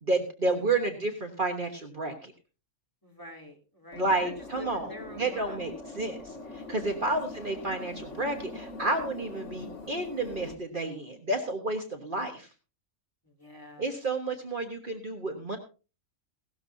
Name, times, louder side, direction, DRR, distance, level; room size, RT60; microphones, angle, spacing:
voice 1, 0.0-2.3 4.0-12.5 13.8-15.6, right 2 dB, 45° right, 4 dB, 1.5 m, -31 dB
voice 2, 3.0-5.7 7.1-7.5 13.2-13.9, left 1 dB, 15° left, 1 dB, 3.1 m, -46 dB
sound 1, 3.9-10.5, left 2 dB, 70° left, 2.7 m, -43 dB
17.5 x 12.5 x 2.8 m, 0.33 s
omnidirectional pair, 1.3 m